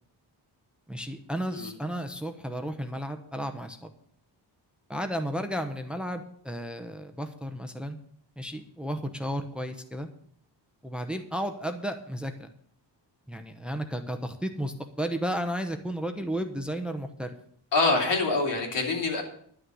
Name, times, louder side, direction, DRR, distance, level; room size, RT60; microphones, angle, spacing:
voice 1, 0.9-3.9 4.9-8.0 8.4-10.1 10.8-12.5 13.3-17.3, equal, ahead, 7 dB, 0.9 m, -33 dB
voice 2, 17.7-19.2, left 3 dB, 80° left, 0 dB, 3.4 m, -25 dB
11.5 x 6.5 x 9.3 m, 0.63 s
wide cardioid pair, 150°, 42 cm